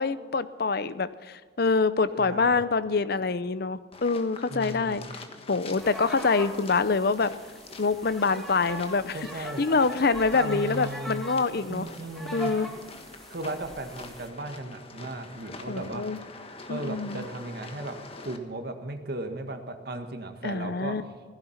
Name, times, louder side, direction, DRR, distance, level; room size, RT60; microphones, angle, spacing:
voice 1, 0.0-5.0 5.5-7.3 7.8-11.9 12.3-12.7 15.7-16.2 16.7-17.2 20.4-21.0, left 4 dB, 60° left, 14 dB, 0.7 m, -26 dB
voice 2, 2.2-2.6 4.5-5.1 9.1-9.6 10.3-11.3 11.7-12.5 13.3-16.0 16.7-18.0 18.2-21.0, right 2 dB, 60° right, 6 dB, 1.7 m, -36 dB
sound 1, 3.9-18.4, left 3 dB, 35° left, 1.4 m, -46 dB
sound 2, 5.8-14.3, equal, ahead, 2.1 m, -42 dB
16.0 x 15.5 x 5.9 m, 1.5 s
head